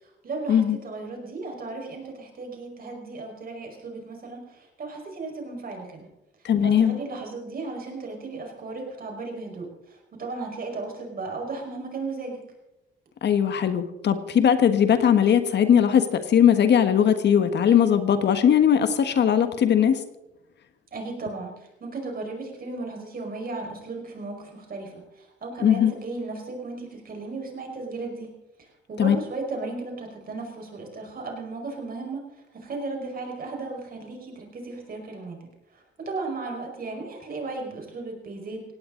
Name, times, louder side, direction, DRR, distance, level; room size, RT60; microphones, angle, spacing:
voice 1, 0.2-6.1 6.6-12.4 20.9-28.3 28.6-32.3 32.5-38.8, right 3 dB, 45° right, 2 dB, 5.2 m, -35 dB
voice 2, 6.4-7.0 13.2-20.0 25.6-25.9 29.0-29.2, left 8 dB, 60° left, 9 dB, 1.5 m, -19 dB
18.5 x 17.0 x 3.9 m, 0.89 s
cardioid pair, 90°, 20 cm